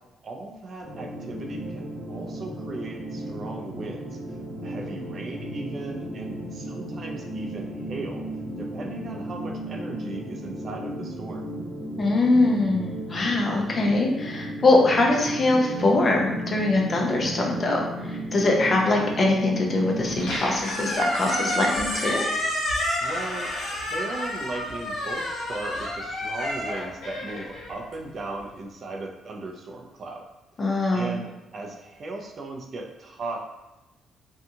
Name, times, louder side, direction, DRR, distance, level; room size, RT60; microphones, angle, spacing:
voice 1, 0.2-8.2 8.6-11.5 23.0-30.3 30.9-33.4, right 2 dB, 50° right, 1 dB, 0.4 m, -37 dB
sound 1, 0.8-20.4, right 1 dB, 80° right, 1.1 m, -35 dB
voice 2, 12.0-22.2 30.6-31.2, left 2 dB, 40° left, -1 dB, 0.6 m, -22 dB
Squeak, 20.1-28.3, left 1 dB, 80° left, 0.9 m, -29 dB
2.7 x 2.3 x 2.7 m, 0.99 s
cardioid pair, 90°, 0 cm